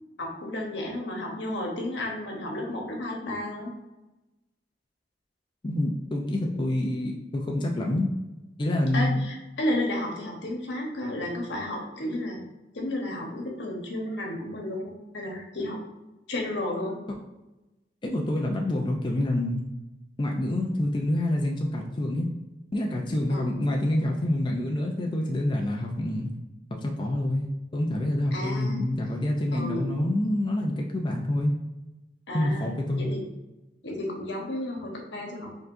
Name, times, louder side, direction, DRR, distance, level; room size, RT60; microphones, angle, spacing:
voice 1, 0.2-3.7 8.9-12.4 12.7-15.8 16.3-16.9 23.3-23.5 28.3-28.8 29.5-29.8 32.3-33.2 33.8-35.5, left 1 dB, 80° left, 0 dB, 1.1 m, -32 dB
voice 2, 5.6-8.1 8.6-9.2 18.0-19.6 20.2-22.3 22.7-26.3 26.7-31.6 32.3-33.0, left 1 dB, 25° left, 0 dB, 0.4 m, -27 dB
4.6 x 3.8 x 2.6 m, 1.0 s
head